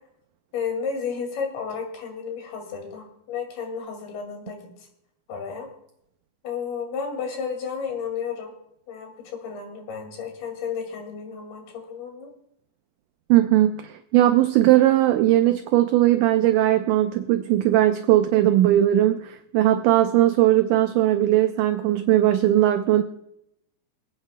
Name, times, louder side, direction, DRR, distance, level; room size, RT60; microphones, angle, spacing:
voice 1, 0.5-4.7 5.3-5.7 6.4-8.5 8.9-12.3, left 6 dB, 85° left, 3 dB, 4.3 m, -32 dB
voice 2, 13.3-23.0, right 13 dB, 85° right, 8 dB, 1.8 m, -19 dB
27.0 x 9.0 x 2.2 m, 0.78 s
omnidirectional pair, 4.3 m